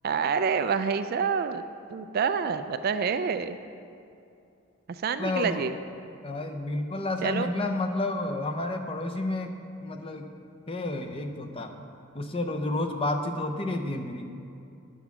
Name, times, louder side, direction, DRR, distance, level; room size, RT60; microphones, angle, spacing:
voice 1, 0.0-1.6 1.9-3.6 4.9-5.7 7.2-7.5, right 6 dB, 45° right, 10 dB, 0.3 m, -27 dB
voice 2, 5.2-5.7 6.2-9.5 9.8-10.3 10.7-11.7 12.1-14.3, left 2 dB, 25° left, 5 dB, 0.7 m, -30 dB
9.7 x 7.1 x 5.9 m, 2.6 s
head